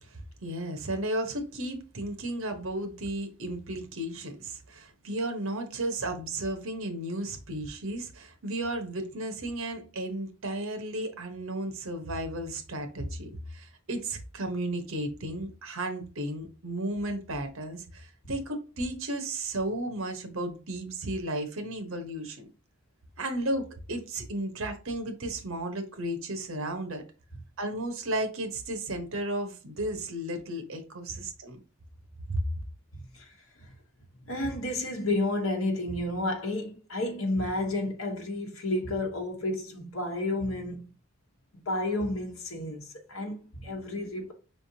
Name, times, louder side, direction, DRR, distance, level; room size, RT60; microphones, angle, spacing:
voice 1, 0.0-22.5 23.2-27.0 27.6-31.6 32.3-32.5, right 1 dB, 75° right, 1.1 m, -34 dB
voice 2, 32.9-33.4 34.3-40.9 41.6-44.3, left 1 dB, 75° left, 1.1 m, -31 dB
5.2 x 3.5 x 2.7 m
head